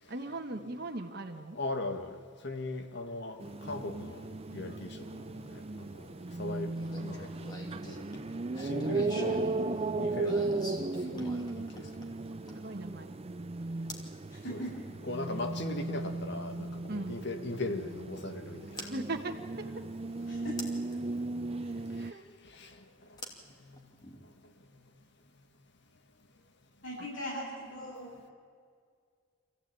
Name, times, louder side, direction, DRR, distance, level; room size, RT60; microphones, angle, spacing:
voice 1, 0.1-1.6 12.6-13.2 16.9-17.2 18.9-19.6 22.0-22.2 27.0-27.1, right 2 dB, 55° right, 3 dB, 1.4 m, -38 dB
voice 2, 1.6-6.1 6.4-7.3 7.8-8.0 8.6-9.4 10.0-11.9 14.5-14.6 15.0-18.9 22.4-22.8 23.7-23.8, left 2 dB, 60° left, 6 dB, 1.9 m, -39 dB
sound 1, 3.4-22.1, right 3 dB, 30° right, 0.5 m, -36 dB
sound 2, 6.7-12.8 13.9-14.1 16.0-16.1 18.8-18.9 20.6-21.0 23.2-24.2, left 1 dB, 20° left, 2.6 m, -45 dB
voice 3, 14.3-14.8 20.3-20.7 21.6-21.8 26.8-28.2, equal, 80° left, -6 dB, 7.7 m, -40 dB
26.5 x 15.5 x 9.0 m, 2.1 s
head